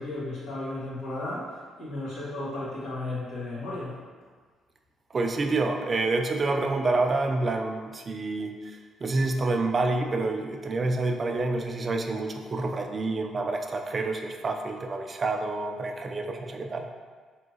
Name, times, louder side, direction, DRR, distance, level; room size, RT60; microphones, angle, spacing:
voice 1, 0.0-4.0, left 2 dB, 80° left, -8 dB, 1.3 m, -34 dB
voice 2, 5.1-16.9, right 3 dB, 40° right, 3 dB, 0.4 m, -28 dB
3.6 x 2.7 x 2.7 m, 1.5 s
cardioid pair, 90°, 0 cm